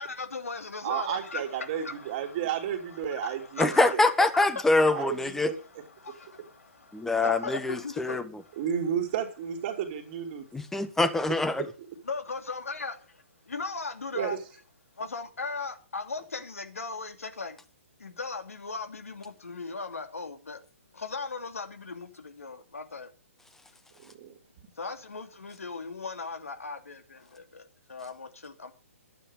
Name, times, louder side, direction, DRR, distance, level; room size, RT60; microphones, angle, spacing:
voice 1, 0.0-2.5 3.0-3.9 4.2-4.6 4.9-5.1 6.0-8.6 12.0-14.4 15.0-17.6 18.0-20.6 20.9-23.1 24.8-28.7, left 4 dB, 80° left, 2.7 m, -38 dB
voice 2, 0.8-4.0 4.9-5.8 8.6-10.4 14.1-14.4 24.0-24.3, right 9 dB, 40° right, 3.1 m, -32 dB
voice 3, 3.6-5.5 6.9-8.2 10.5-11.7, left 2 dB, 5° left, 1.2 m, -24 dB
12.0 x 9.1 x 7.2 m
figure-of-eight pair, 130°, 8 cm